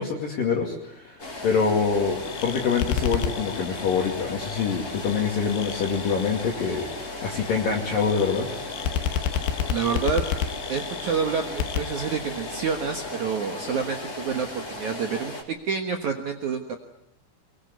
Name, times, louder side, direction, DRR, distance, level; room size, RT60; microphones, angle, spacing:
voice 1, 0.0-8.5, left 5 dB, 50° left, 0 dB, 3.7 m, -25 dB
sound 1, 1.2-15.4, left 2 dB, 20° left, 3.5 m, -36 dB
sound 2, 1.8-13.1, left 9 dB, 70° left, 3.2 m, -32 dB
voice 2, 9.7-10.3 10.7-16.7, right 6 dB, 75° right, 5 dB, 1.7 m, -28 dB
25.0 x 23.0 x 9.5 m, 0.75 s
omnidirectional pair, 5.9 m